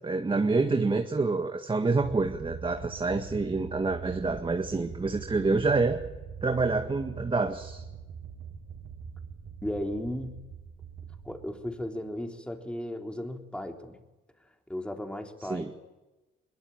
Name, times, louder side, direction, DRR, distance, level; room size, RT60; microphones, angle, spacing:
voice 1, 0.0-6.0 6.4-7.8 15.5-15.7, right 3 dB, 25° right, 5 dB, 1.8 m, -27 dB
sound 1, 2.0-12.1, right 6 dB, 65° right, 4.8 m, -43 dB
voice 2, 9.6-10.4 11.2-14.0 14.7-15.7, left 1 dB, 5° left, 3 dB, 3.6 m, -35 dB
22.5 x 21.5 x 9.0 m, 1.1 s
cardioid pair, 90°, 20 cm